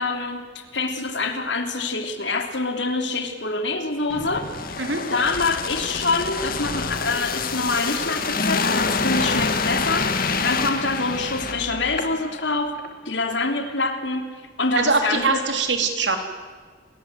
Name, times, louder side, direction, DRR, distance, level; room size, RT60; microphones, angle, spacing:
voice 1, 0.0-4.8 5.1-12.8 13.0-14.3 14.6-15.4, left 3 dB, 70° left, 6 dB, 3.2 m, -26 dB
sound 1, 4.1-12.4 12.8-12.9, left 4 dB, 50° left, 2.0 m, -26 dB
voice 2, 14.8-16.2, right 4 dB, 70° right, 5 dB, 3.7 m, -22 dB
30.0 x 22.5 x 8.1 m, 1.5 s
head